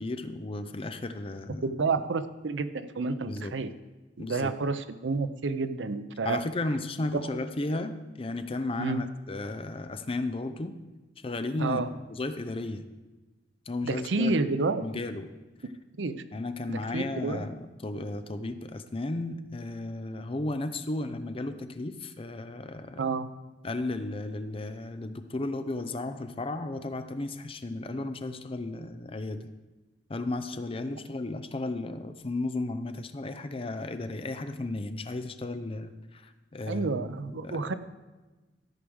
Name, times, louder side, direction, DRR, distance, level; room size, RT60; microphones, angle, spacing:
voice 1, 0.0-1.7 3.3-3.5 4.2-4.5 6.2-10.8 11.2-11.8 12.1-12.8 13.7-14.3 14.8-15.3 16.3-23.0 23.6-29.4 30.1-36.2 36.5-36.9 37.3-37.7, left 2 dB, 30° left, 10 dB, 0.6 m, -34 dB
voice 2, 1.6-3.7 4.2-6.4 7.1-7.2 7.7-7.8 8.8-9.0 11.6-11.9 13.8-14.8 16.0-16.2 16.7-17.4 23.0-23.3 36.7-37.7, right 3 dB, 80° right, 12 dB, 0.6 m, -30 dB
13.5 x 4.8 x 6.3 m, 1.2 s
head